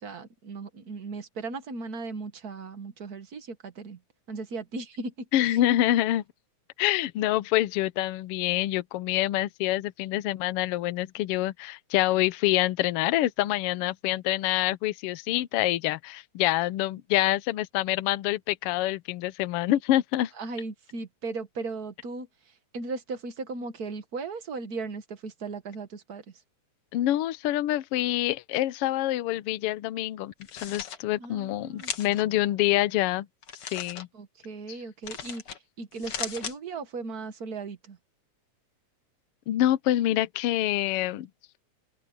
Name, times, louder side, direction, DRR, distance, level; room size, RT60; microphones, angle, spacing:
voice 1, 0.0-4.0 4.3-5.6 20.4-22.3 22.7-26.2 31.2-31.9 34.1-38.0, right 3 dB, 45° right, 1.4 m, -37 dB
voice 2, 5.3-6.2 6.8-20.3 26.9-33.3 33.7-34.1 39.5-41.3, left 15 dB, 70° left, 1.4 m, -26 dB
sound 1, 30.3-31.0 31.8-32.2 33.4-34.0 35.0-35.6 35.9-36.6, left 7 dB, 50° left, 2.4 m, -37 dB
open air
omnidirectional pair, 3.4 m